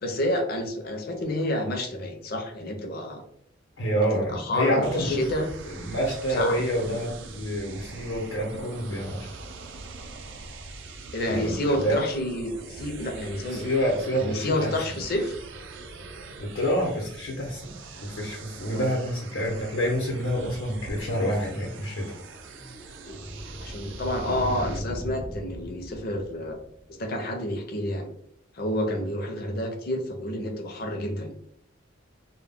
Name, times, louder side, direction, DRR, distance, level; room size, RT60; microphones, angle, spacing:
voice 1, 0.0-3.2 4.1-5.5 6.3-7.0 11.1-13.7 14.2-15.3 18.7-18.9 23.1-23.2 23.6-26.6 27.0-28.1 28.5-31.3, left 1 dB, 50° left, 4 dB, 0.5 m, -29 dB
voice 2, 3.8-5.2 5.7-9.3 11.3-12.0 13.5-14.7 16.4-17.6 18.0-22.0, equal, 90° left, -3 dB, 0.8 m, -27 dB
sound 1, 4.8-24.8, right 3 dB, 70° right, 0.4 m, -43 dB
sound 2, 21.8-26.9, equal, 5° right, 0.4 m, -38 dB
2.2 x 2.0 x 3.4 m, 0.69 s
head